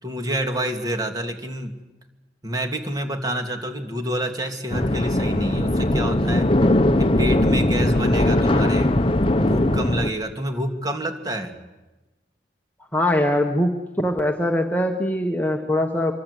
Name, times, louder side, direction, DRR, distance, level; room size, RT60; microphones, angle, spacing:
voice 1, 0.0-1.7 2.4-6.5 7.0-9.0 9.4-11.6, right 1 dB, 20° right, 4 dB, 2.7 m, -28 dB
sound 1, 4.7-10.1, left 1 dB, 30° left, 1.0 m, -20 dB
voice 2, 12.9-16.1, left 1 dB, 10° left, 2 dB, 1.4 m, -22 dB
26.0 x 24.0 x 8.4 m, 1.1 s
head